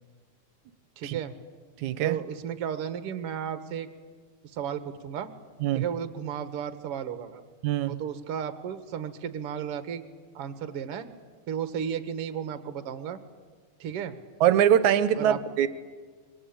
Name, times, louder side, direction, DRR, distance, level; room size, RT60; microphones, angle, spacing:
voice 1, 1.0-1.4 2.0-3.9 4.5-5.3 5.7-7.4 7.9-10.0 10.3-11.1 11.5-13.2 13.8-14.2 15.2-15.4, right 8 dB, 55° right, 2.1 m, -34 dB
voice 2, 1.8-2.2 5.6-5.8 7.6-8.0 14.4-15.7, right 10 dB, 75° right, 2.3 m, -23 dB
26.0 x 23.0 x 8.6 m
omnidirectional pair, 3.5 m